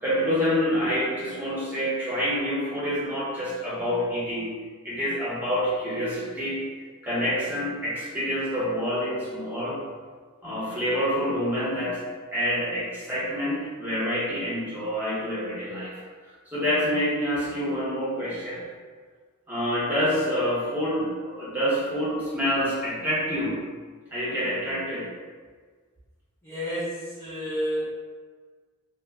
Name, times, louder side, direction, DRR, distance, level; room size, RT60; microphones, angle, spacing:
voice 1, 0.0-4.6 4.8-6.6 7.0-9.8 10.4-12.0 12.3-16.0 16.5-18.6 19.5-23.6 24.1-25.1, equal, 10° right, -8 dB, 0.8 m, -27 dB
voice 2, 26.4-27.9, equal, 15° left, -12 dB, 0.4 m, -30 dB
2.8 x 2.1 x 3.5 m, 1.5 s
head